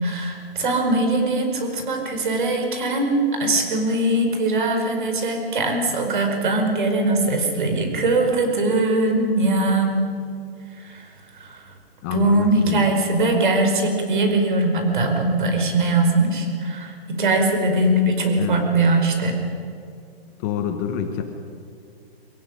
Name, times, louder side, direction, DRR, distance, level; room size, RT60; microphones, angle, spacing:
voice 1, 0.0-10.1 10.8-11.1 11.3-11.6 12.1-19.4, right 2 dB, 50° right, 4 dB, 5.2 m, -21 dB
voice 2, 12.0-12.9 18.4-18.6 20.4-21.2, left 8 dB, 20° left, 5 dB, 1.1 m, -27 dB
23.5 x 17.0 x 9.9 m, 2.4 s
hypercardioid pair, 165°, 31 cm